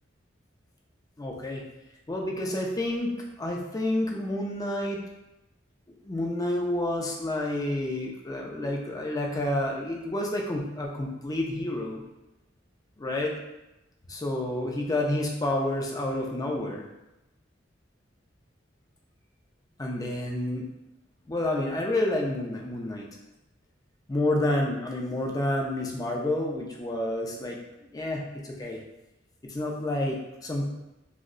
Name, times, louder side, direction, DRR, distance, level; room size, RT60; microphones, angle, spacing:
voice 1, 1.2-1.6 2.1-5.0 6.0-12.0 13.0-13.3 14.1-16.8 19.8-20.7 21.3-23.1 24.1-27.6 27.9-28.8 29.4-30.7, left 1 dB, 20° left, 0 dB, 0.4 m, -29 dB
2.6 x 2.1 x 3.7 m, 0.94 s
head